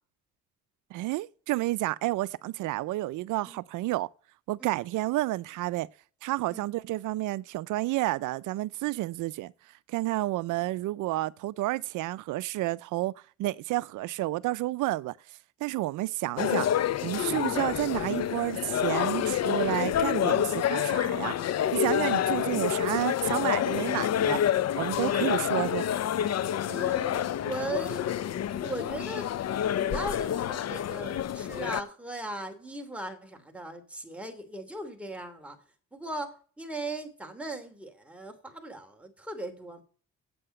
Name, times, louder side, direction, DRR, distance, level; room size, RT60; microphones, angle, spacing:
voice 1, 0.9-4.1 4.5-5.9 6.2-9.5 9.9-13.1 13.4-16.7 17.0-21.3 21.7-24.4 24.8-25.9, right 18 dB, 85° right, 0.5 m, -30 dB
sound 1, 16.4-31.8, left 10 dB, 60° left, 0.8 m, -28 dB
voice 2, 26.6-28.1 28.6-29.3 29.8-35.6 35.9-39.8, right 2 dB, 5° right, 2.9 m, -38 dB
8.5 x 7.8 x 7.7 m
cardioid pair, 90°, 30 cm